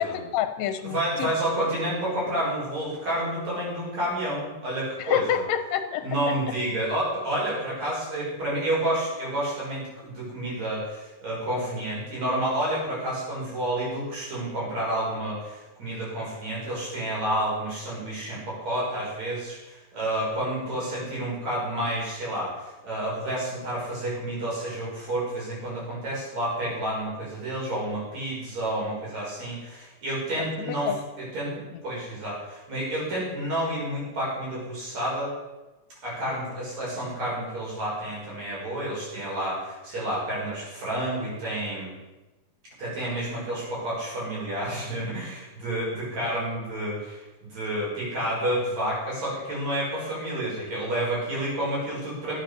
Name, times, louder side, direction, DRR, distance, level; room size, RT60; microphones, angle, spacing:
voice 1, 0.0-1.3 5.1-6.0 30.6-31.0, left 9 dB, 75° left, 8 dB, 1.9 m, -27 dB
voice 2, 0.8-5.4 6.0-35.3 36.0-41.9 42.8-52.4, right 1 dB, 60° right, -6 dB, 7.0 m, -30 dB
12.5 x 8.4 x 6.6 m, 1.1 s
omnidirectional pair, 3.5 m